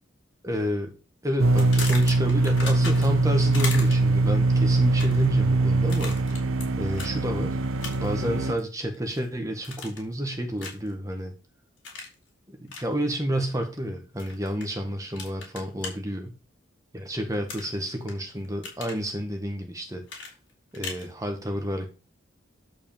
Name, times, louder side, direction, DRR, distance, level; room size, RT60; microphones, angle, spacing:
voice 1, 0.4-0.9 1.2-6.3 6.8-7.6 8.0-11.3 12.5-16.3 16.9-20.0 20.7-21.9, equal, 15° right, 4 dB, 1.5 m, -30 dB
sound 1, 1.4-8.5, right 2 dB, 90° right, 0.8 m, -22 dB
sound 2, 1.6-3.2 3.5-4.2 4.8-5.3 5.9-6.7 6.9-7.1 7.8-8.2 8.6-9.2 9.6-10.1 10.6-10.9 11.8-12.1 12.7-12.9 14.2-14.6 15.2-15.9 17.5-18.1 18.4-19.0 20.1-21.1, left 4 dB, 60° left, 4.6 m, -37 dB
11.5 x 4.9 x 7.2 m, 0.34 s
head